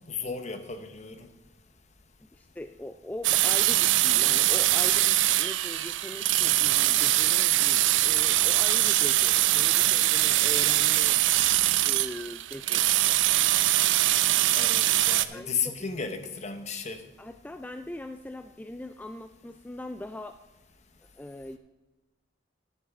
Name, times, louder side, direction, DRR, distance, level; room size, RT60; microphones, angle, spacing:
voice 1, 0.1-1.3 14.5-17.1, left 5 dB, 40° left, 1.0 m, -34 dB
voice 2, 2.3-11.2 11.8-13.2 15.3-15.9 17.2-20.4 21.2-21.6, left 1 dB, 10° left, 0.3 m, -41 dB
sound 1, 3.2-15.3, right 15 dB, 70° right, 0.5 m, -23 dB
10.5 x 10.5 x 3.7 m
head